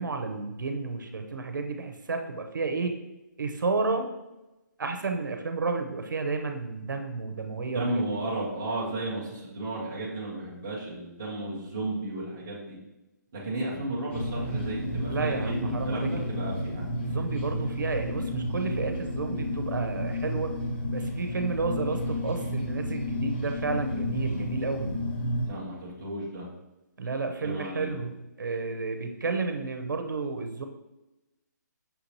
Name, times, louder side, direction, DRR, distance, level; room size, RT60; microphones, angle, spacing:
voice 1, 0.0-2.9 3.4-4.1 4.8-8.0 15.1-16.4 17.0-20.5 20.9-25.0 27.0-30.7, right 4 dB, 90° right, 5 dB, 0.6 m, -31 dB
voice 2, 7.7-12.8 13.3-16.9 25.4-26.5 27.4-27.9, right 1 dB, 10° right, -6 dB, 0.3 m, -33 dB
sound 1, 14.1-25.5, left 1 dB, 35° left, 0.6 m, -31 dB
5.7 x 2.6 x 2.9 m, 0.99 s
hypercardioid pair, 180°, 10 cm